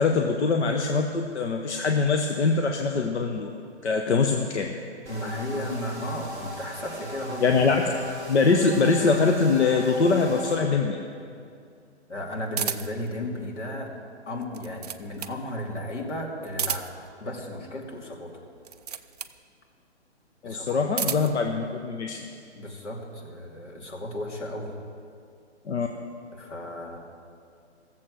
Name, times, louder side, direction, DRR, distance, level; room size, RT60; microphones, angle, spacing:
voice 1, 0.0-3.5 3.8-4.7 7.4-7.8 8.3-11.0 20.4-22.2 25.7-25.9, left 4 dB, 70° left, 3 dB, 1.0 m, -23 dB
sound 1, 5.0-10.6, right 1 dB, 10° left, 2.1 m, -39 dB
voice 2, 5.1-7.6 12.1-13.9 14.3-16.9 17.2-18.3 20.4-21.2 22.6-24.7 26.3-27.0, left 1 dB, 90° left, -1 dB, 2.6 m, -34 dB
sound 2, 12.5-13.1 14.4-15.4 16.5-17.1 18.6-19.4 20.6-21.4, right 7 dB, 35° right, 0.4 m, -32 dB
16.0 x 7.5 x 6.3 m, 2.3 s
hypercardioid pair, 150°, 35 cm